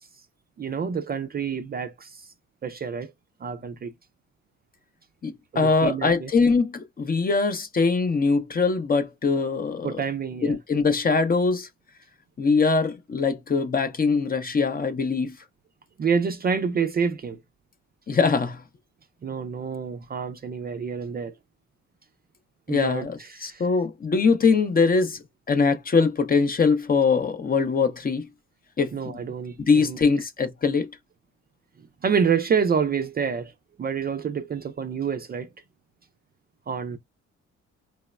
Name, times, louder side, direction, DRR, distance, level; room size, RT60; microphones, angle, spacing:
voice 1, 0.6-2.2 2.6-3.1 3.4-3.9 5.5-6.3 9.8-10.6 16.0-17.4 19.2-21.3 22.7-23.6 28.9-30.0 32.0-33.5 33.8-35.5 36.7-37.0, right 6 dB, 30° right, 0.4 m, -27 dB
voice 2, 5.2-10.0 10.4-11.7 12.4-15.4 18.1-18.6 22.7-25.2 25.5-28.2 28.8-29.2 29.6-30.9, left 4 dB, 30° left, 0.6 m, -22 dB
3.1 x 2.0 x 2.2 m
cardioid pair, 90°, 30 cm